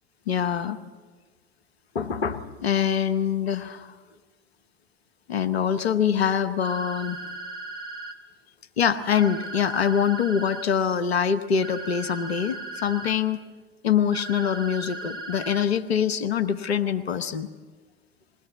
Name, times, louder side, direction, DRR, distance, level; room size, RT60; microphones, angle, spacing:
voice 1, 0.3-0.8 1.9-3.9 5.3-7.2 8.8-13.4 13.8-17.5, left 8 dB, 80° left, 11 dB, 0.9 m, -24 dB
sound 1, 6.6-8.1 9.1-10.6 11.6-13.1 14.1-15.6, right 2 dB, 60° right, 2.5 m, -37 dB
21.5 x 17.0 x 8.2 m, 1.4 s
figure-of-eight pair, 70°, 31 cm